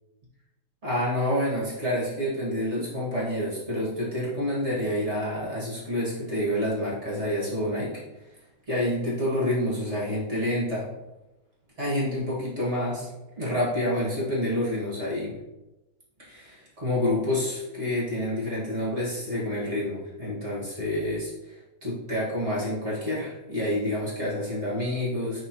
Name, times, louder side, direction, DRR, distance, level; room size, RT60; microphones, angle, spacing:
voice 1, 0.8-8.0 8.7-10.9 11.8-13.1 13.4-15.4 16.2-25.4, left 1 dB, 35° right, -6 dB, 2.2 m, -28 dB
10.5 x 3.7 x 3.0 m, 1.0 s
omnidirectional pair, 2.1 m